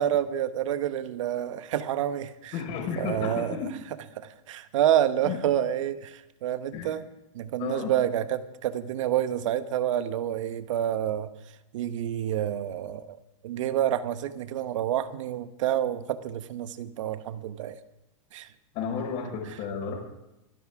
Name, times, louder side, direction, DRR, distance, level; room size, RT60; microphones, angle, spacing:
voice 1, 0.0-2.6 3.0-3.7 4.2-7.1 7.3-11.3 11.7-17.8 18.3-18.5, right 11 dB, 70° right, 11 dB, 1.2 m, -28 dB
voice 2, 2.5-3.7 5.2-5.4 6.7-6.9 7.6-7.9 18.7-20.0, left 6 dB, 40° left, 0 dB, 5.3 m, -32 dB
26.0 x 11.0 x 3.7 m, 0.92 s
supercardioid pair, 150°, 17 cm